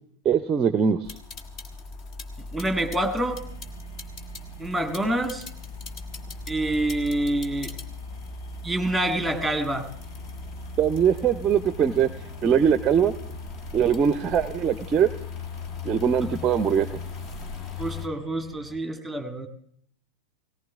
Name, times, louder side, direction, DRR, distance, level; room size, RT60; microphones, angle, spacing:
voice 1, 0.2-1.1 10.8-12.1 12.4-13.1 13.7-15.1 15.8-16.9, right 8 dB, 25° right, 14 dB, 0.6 m, -21 dB
sound 1, 1.0-18.1, left 3 dB, 35° left, 1.3 m, -38 dB
voice 2, 2.5-3.4 4.6-5.4 6.5-7.7 8.6-9.9 16.2-16.4 17.8-19.5, right 1 dB, 5° right, 8 dB, 1.9 m, -27 dB
sound 2, 3.2-18.7, equal, 70° left, 3.4 m, -48 dB
18.0 x 18.0 x 3.6 m, 0.67 s
figure-of-eight pair, 90°, 0 cm